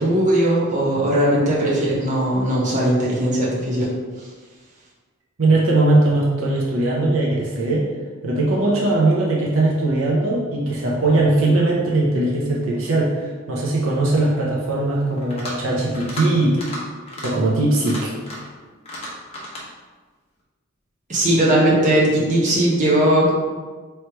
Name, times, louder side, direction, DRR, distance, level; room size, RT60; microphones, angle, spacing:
voice 1, 0.0-3.9 21.1-23.3, right 1 dB, 35° right, -6 dB, 0.9 m, -18 dB
voice 2, 5.4-7.9 8.2-16.6 17.2-18.1, right 2 dB, 70° right, -4 dB, 0.7 m, -20 dB
sound 1, 15.2-15.6 15.9-16.3 16.5-16.8 17.1-17.3 17.7-18.5 18.9-19.6, left 1 dB, 30° left, 1.0 m, -33 dB
3.2 x 3.1 x 4.4 m, 1.4 s
head